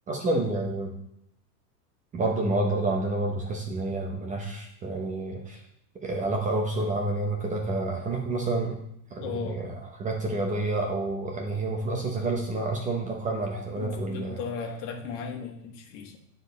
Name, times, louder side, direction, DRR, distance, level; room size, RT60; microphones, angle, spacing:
voice 1, 0.1-0.9 2.1-5.6 6.0-8.8 9.1-9.7 10.0-14.4, right 2 dB, 15° right, 1 dB, 0.8 m, -29 dB
voice 2, 9.2-9.6 13.8-16.2, left 5 dB, 50° left, 3 dB, 1.6 m, -36 dB
9.3 x 4.7 x 4.0 m, 0.75 s
supercardioid pair, 140°, 48 cm